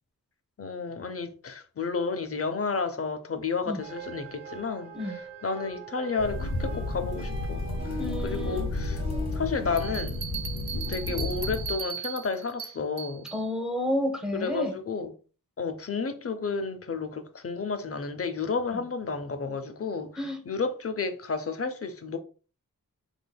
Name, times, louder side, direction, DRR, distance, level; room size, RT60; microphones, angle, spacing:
voice 1, 0.6-7.6 7.9-9.0 9.3-10.2 10.9-13.3 14.3-15.1 15.6-22.2, left 4 dB, 40° left, 0.6 m, -32 dB
sound 1, 3.8-10.0, right 1 dB, 35° right, 1.2 m, -41 dB
sound 2, 6.2-11.7, left 2 dB, 90° left, 1.4 m, -32 dB
voice 2, 8.0-8.7 13.3-14.7 20.2-20.4, left 1 dB, ahead, 0.8 m, -30 dB
sound 3, 9.8-13.4, right 8 dB, 70° right, 0.5 m, -37 dB
3.6 x 3.4 x 2.2 m
wide cardioid pair, 60°, 36 cm